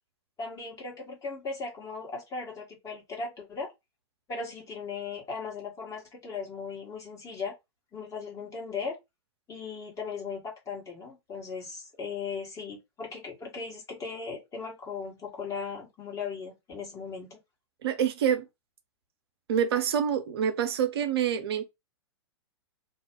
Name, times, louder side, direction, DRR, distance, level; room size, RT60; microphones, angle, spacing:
voice 1, 0.4-3.7 4.3-7.5 7.9-9.0 9.5-17.4, left 5 dB, 20° left, 1.3 m, -37 dB
voice 2, 17.8-18.5 19.5-21.6, right 8 dB, 60° right, 0.7 m, -26 dB
2.4 x 2.1 x 3.6 m
figure-of-eight pair, 110°, 15 cm